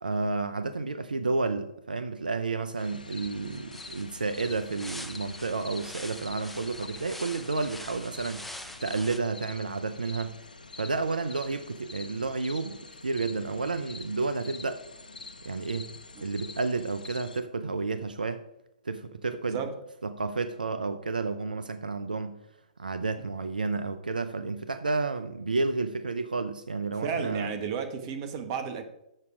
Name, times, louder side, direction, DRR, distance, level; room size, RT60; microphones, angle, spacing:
voice 1, 0.0-8.5 8.8-10.4 10.8-12.8 13.0-14.8 15.4-15.9 16.2-18.4 18.8-19.6 20.0-22.4 22.8-27.5, right 3 dB, 85° right, 0.6 m, -31 dB
sound 1, 2.8-17.4, left 3 dB, 90° left, 0.8 m, -46 dB
sound 2, 3.2-9.2, left 1 dB, 5° left, 0.6 m, -45 dB
voice 2, 27.0-28.8, right 6 dB, 40° right, 1.4 m, -33 dB
7.0 x 6.6 x 4.8 m
figure-of-eight pair, 125°, 5 cm